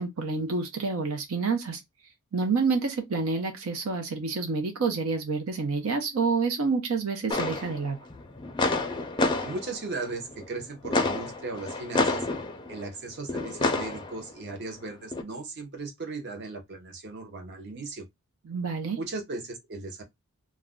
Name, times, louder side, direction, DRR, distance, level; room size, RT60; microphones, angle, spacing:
voice 1, 0.0-1.8 2.3-8.0 18.5-19.0, right 4 dB, 90° right, 0.6 m, -28 dB
sound 1, 7.3-10.6 10.8-12.8 13.3-14.3 15.1-15.2, left 2 dB, 20° left, 0.4 m, -29 dB
voice 2, 9.4-12.3 12.7-18.0 19.0-20.0, right 3 dB, 55° right, 0.7 m, -37 dB
2.3 x 2.1 x 3.5 m
head